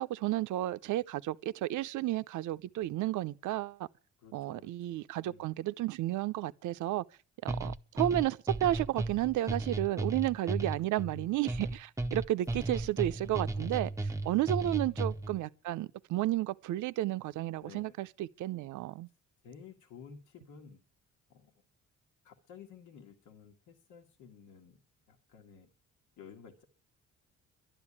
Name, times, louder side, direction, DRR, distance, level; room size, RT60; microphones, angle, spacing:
voice 1, 0.0-3.8 4.3-7.0 7.4-19.1, right 14 dB, 75° right, 0.6 m, -32 dB
voice 2, 4.2-5.0 5.2-5.5 12.5-13.1 14.6-15.0 17.6-18.0 19.4-20.8 21.3-21.5 22.2-24.8 25.1-25.7 26.2-26.7, left 6 dB, 85° left, 1.8 m, -53 dB
sound 1, 7.5-15.4, right 2 dB, 10° right, 0.6 m, -35 dB
12.0 x 9.9 x 8.6 m
cardioid pair, 90°, 30 cm